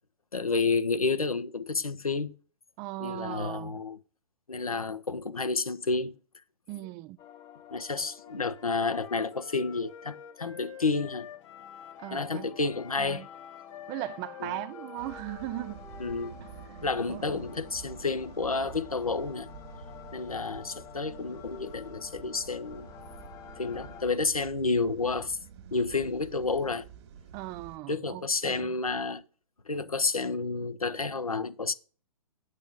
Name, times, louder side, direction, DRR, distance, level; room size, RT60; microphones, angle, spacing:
voice 1, 0.3-2.3 3.0-4.0 4.5-6.2 7.7-11.3 12.1-13.2 14.4-14.6 16.0-16.4 16.8-19.5 20.1-22.9 23.6-25.4 25.7-26.9 27.9-29.2 29.7-31.7, left 4 dB, 85° left, 1.1 m, -30 dB
voice 2, 2.8-3.8 6.7-7.2 12.0-12.5 13.0-13.3 13.9-15.8 16.4-16.5 17.1-17.4 27.3-28.7, right 17 dB, 20° right, 0.4 m, -38 dB
sound 1, 7.2-24.0, left 9 dB, 20° left, 0.8 m, -50 dB
Wind instrument woodwind instrument, 8.2-12.3 12.6-16.8, left 7 dB, 60° left, 1.8 m, -48 dB
sound 2, 15.0-27.8, right 7 dB, 50° right, 1.8 m, -49 dB
9.3 x 8.2 x 3.7 m
figure-of-eight pair, 120°, 18 cm